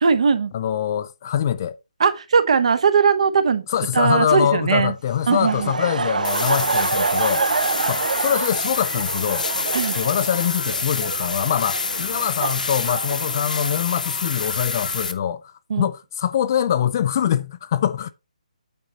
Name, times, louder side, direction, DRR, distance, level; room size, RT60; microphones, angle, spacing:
voice 1, 0.0-0.5 2.0-3.7 3.9-4.9 5.3-5.7 9.7-10.0 15.7-15.9, right 5 dB, 50° right, 0.9 m, -19 dB
voice 2, 0.5-1.8 3.7-7.5 7.9-9.5 10.0-18.1, left 9 dB, 25° left, 0.3 m, -23 dB
Laughter, 5.3-13.8, right 4 dB, 75° right, 0.6 m, -27 dB
sound 1, 6.2-15.1, left 4 dB, 80° left, 0.9 m, -27 dB
8.8 x 3.8 x 4.2 m
hypercardioid pair, 170°, 4 cm